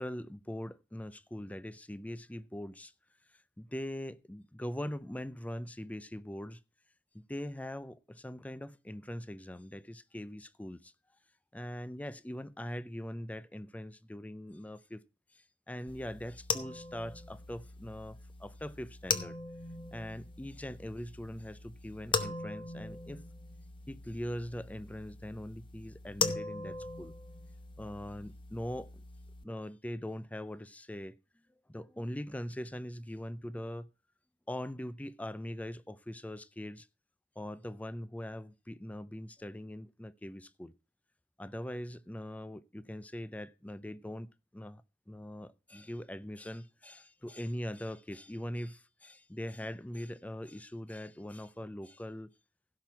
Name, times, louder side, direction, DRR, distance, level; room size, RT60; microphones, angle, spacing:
voice 1, 0.0-2.9 3.6-6.6 7.1-10.9 11.5-15.0 15.3-19.4 19.9-23.2 23.9-27.1 27.8-28.9 29.4-31.2 31.7-33.9 34.5-36.9 37.4-40.7 41.4-52.3, equal, 10° left, 0.4 m, -42 dB
sound 1, 15.9-29.4, left 4 dB, 30° left, 0.8 m, -40 dB
16.0 x 5.9 x 4.4 m
head